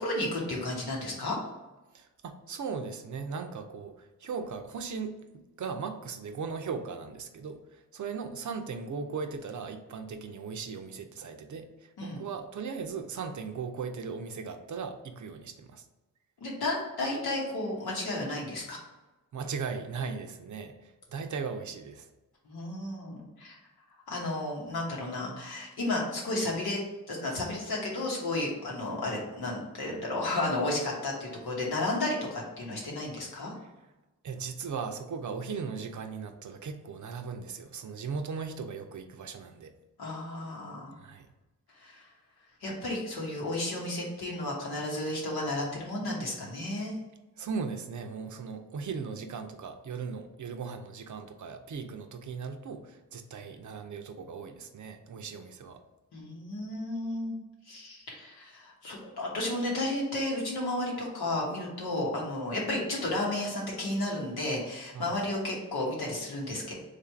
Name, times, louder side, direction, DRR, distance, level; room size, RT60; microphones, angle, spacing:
voice 1, 0.0-1.4 12.0-12.2 16.4-18.8 22.4-23.5 24.1-26.8 27.1-33.5 40.0-40.9 41.7-42.1 42.6-47.0 56.1-57.3 57.7-66.7, left 2 dB, 85° left, -3 dB, 1.2 m, -33 dB
voice 2, 1.9-5.3 5.6-15.8 19.3-22.1 34.2-39.7 41.0-41.3 47.4-55.8 64.9-65.2, right 5 dB, 55° right, 7 dB, 0.6 m, -38 dB
3.2 x 2.5 x 4.4 m, 1.1 s
supercardioid pair, 40°, 37 cm